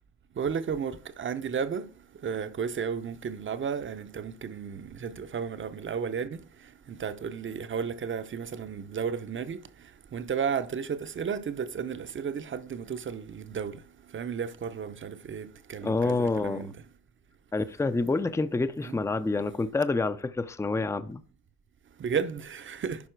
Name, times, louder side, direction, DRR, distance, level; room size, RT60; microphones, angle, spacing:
voice 1, 0.4-1.9 2.2-6.4 6.9-9.6 10.1-13.8 14.1-16.7 18.8-19.0 22.0-23.0, right 6 dB, 40° right, 0.8 m, -33 dB
voice 2, 15.8-16.7 17.5-21.2, left 3 dB, 10° left, 0.5 m, -28 dB
11.0 x 4.8 x 4.6 m
cardioid pair, 90°, 30 cm